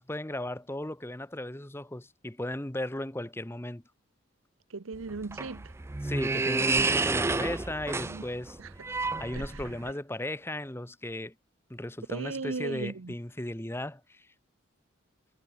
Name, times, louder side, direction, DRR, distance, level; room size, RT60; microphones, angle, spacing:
voice 1, 0.0-3.8 6.0-8.6 9.2-11.3 11.7-14.3, left 1 dB, 10° left, 1.0 m, -36 dB
voice 2, 4.7-5.7 8.0-8.2 8.6-8.7 9.3-9.6 12.1-13.1, right 4 dB, 80° right, 0.8 m, -37 dB
sound 1, 4.9-9.9, right 3 dB, 15° right, 0.3 m, -30 dB
head